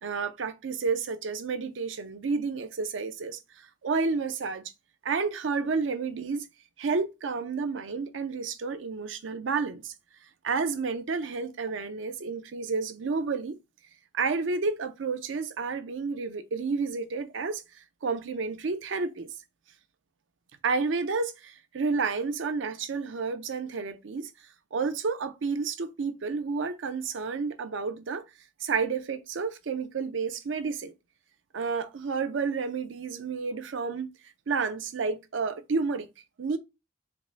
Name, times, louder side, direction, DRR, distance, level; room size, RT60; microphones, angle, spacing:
voice 1, 0.0-4.6 5.0-6.5 6.8-9.9 10.4-13.6 14.1-17.6 18.0-19.3 20.6-24.3 24.7-28.2 28.6-30.9 31.5-34.1 34.5-36.1 36.4-36.6, right 4 dB, 80° right, 0.5 m, -30 dB
4.8 x 2.2 x 3.4 m
head